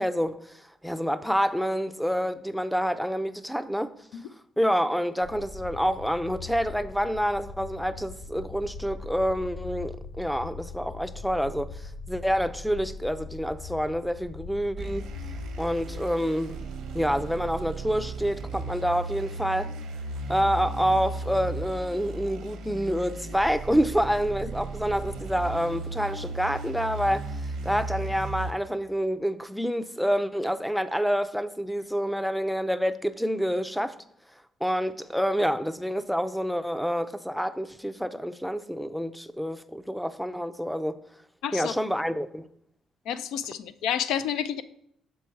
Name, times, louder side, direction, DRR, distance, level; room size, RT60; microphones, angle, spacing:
voice 1, 0.0-3.9 4.6-15.1 15.6-16.6 16.9-19.7 20.3-27.3 27.6-33.9 34.6-41.0 41.5-42.5, equal, ahead, 0.4 m, -27 dB
sound 1, 5.2-16.0, left 4 dB, 60° left, 1.0 m, -41 dB
sound 2, 14.8-28.5, right 3 dB, 85° right, 0.9 m, -36 dB
voice 2, 41.4-41.7 43.1-44.6, left 9 dB, 90° left, 0.3 m, -29 dB
6.0 x 4.6 x 4.4 m
cardioid pair, 90°, 0 cm